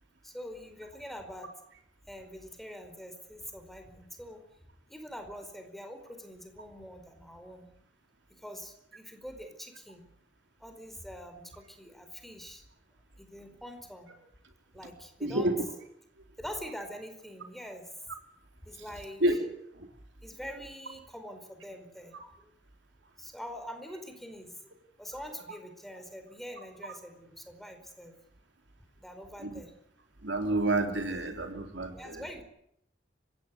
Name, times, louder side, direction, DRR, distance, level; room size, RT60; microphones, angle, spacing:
voice 1, 0.2-1.5 2.1-4.4 4.9-7.7 8.3-10.1 10.6-12.6 13.2-14.1 14.7-15.6 16.4-17.9 18.6-19.2 20.2-22.3 23.2-24.7 25.0-28.1 29.0-29.7 32.0-32.4, equal, ahead, 6 dB, 4.7 m, -44 dB
voice 2, 15.2-15.7 19.2-19.4 19.8-19.9 29.4-29.6 30.2-32.2, right 1 dB, 65° right, 4 dB, 3.9 m, -29 dB
30.0 x 17.0 x 9.6 m, 0.75 s
head